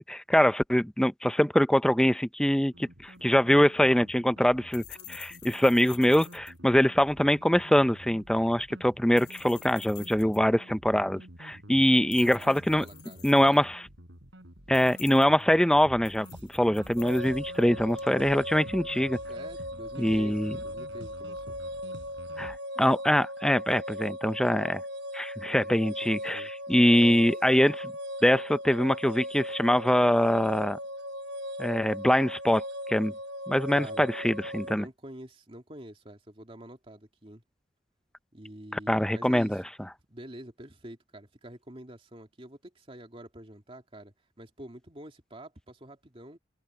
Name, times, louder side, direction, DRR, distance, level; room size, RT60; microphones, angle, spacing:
voice 1, 0.1-4.8 5.1-12.8 13.2-13.8 14.7-19.2 20.0-20.5 22.4-24.8 25.1-27.9 28.2-30.8 31.6-32.6 32.9-33.1 33.5-34.9 38.7-39.6, equal, 5° left, 0.5 m, -24 dB
sound 1, 2.7-22.6, right 1 dB, 80° right, 5.4 m, -49 dB
sound 2, 3.1-18.2, left 16 dB, 65° left, 4.6 m, -51 dB
voice 2, 11.9-13.7 19.3-21.6 25.6-26.5 26.9-27.3 33.7-34.1 34.6-37.4 38.3-39.6 40.1-46.4, right 1 dB, 30° right, 2.6 m, -47 dB
sound 3, 17.0-34.8, equal, 65° right, 1.2 m, -38 dB
head